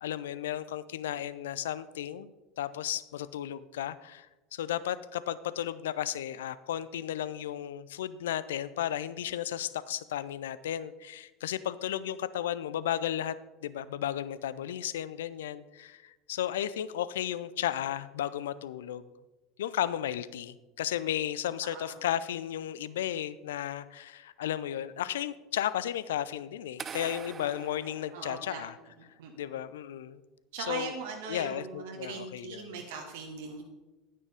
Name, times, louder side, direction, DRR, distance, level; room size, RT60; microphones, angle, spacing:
voice 1, 0.0-2.3 2.6-4.3 4.5-13.3 13.6-19.0 19.6-28.8 29.4-30.2 30.6-30.9 31.3-32.8, left 11 dB, 65° left, 16 dB, 0.4 m, -34 dB
voice 2, 21.6-22.0 28.1-28.6 29.2-29.3 30.5-33.6, right 4 dB, 60° right, 2 dB, 1.1 m, -40 dB
sound 1, 26.8-28.9, right 6 dB, 30° right, 0.5 m, -44 dB
9.6 x 9.4 x 3.4 m, 1.1 s
figure-of-eight pair, 70°, 0 cm